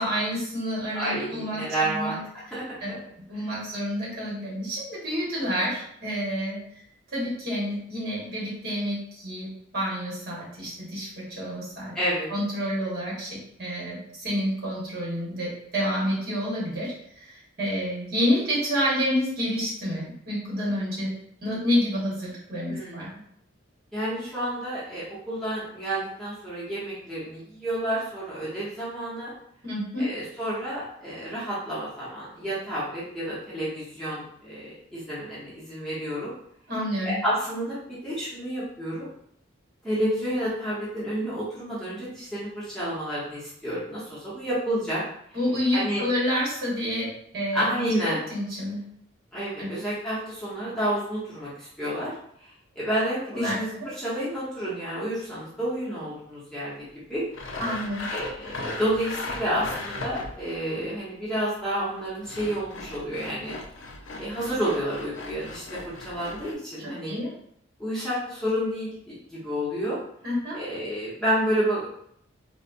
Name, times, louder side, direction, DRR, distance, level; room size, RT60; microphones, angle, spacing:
voice 1, 0.0-2.2 2.8-3.0 3.3-6.6 7.1-11.9 12.3-21.1 21.4-23.1 29.6-30.1 36.7-37.2 45.3-48.8 49.6-49.7 53.3-53.9 57.6-58.1 67.1-67.3 70.2-70.6, equal, 50° right, -7 dB, 1.4 m, -29 dB
voice 2, 0.9-2.2 2.5-2.8 11.9-12.3 22.7-23.2 23.9-29.3 30.0-36.3 37.0-39.1 39.8-45.0 45.7-46.0 47.5-48.2 49.3-52.1 52.8-57.3 58.1-63.5 64.2-65.8 66.0-67.1 67.8-70.0 70.5-71.9, right 1 dB, 5° left, -10 dB, 0.9 m, -30 dB
Sawing, 57.3-60.5 62.0-66.5, left 3 dB, 75° left, 0.4 m, -37 dB
4.1 x 2.2 x 2.5 m, 0.69 s
head